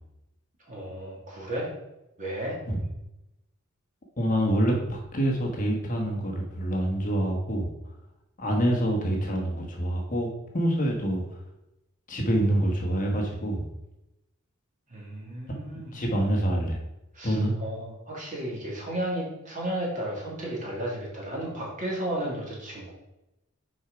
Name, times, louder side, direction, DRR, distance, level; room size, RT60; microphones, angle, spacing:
voice 1, 0.7-1.7 2.2-2.6 14.9-15.9 17.1-22.9, right 1 dB, 40° right, -3 dB, 2.3 m, -33 dB
voice 2, 4.2-7.7 8.4-11.4 12.1-13.7 15.9-16.8 17.2-17.5, right 1 dB, 40° left, 1 dB, 1.3 m, -26 dB
6.3 x 4.8 x 5.0 m, 0.91 s
head